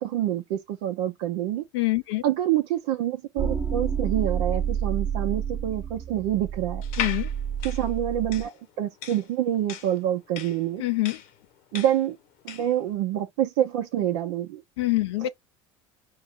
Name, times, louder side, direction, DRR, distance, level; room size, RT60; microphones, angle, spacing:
voice 1, 0.0-1.7 2.2-6.8 7.6-10.8 11.7-12.2 12.4-14.6 15.2-15.3, right 11 dB, 80° right, 0.7 m, -27 dB
voice 2, 1.7-2.2 7.0-7.3 10.8-11.2 14.8-15.3, left 18 dB, 85° left, 0.5 m, -25 dB
sound 1, 3.4-8.5, right 8 dB, 30° right, 1.0 m, -29 dB
sound 2, 6.8-12.8, left 9 dB, 70° left, 0.9 m, -37 dB
4.8 x 2.2 x 3.6 m
supercardioid pair, 100°, 14 cm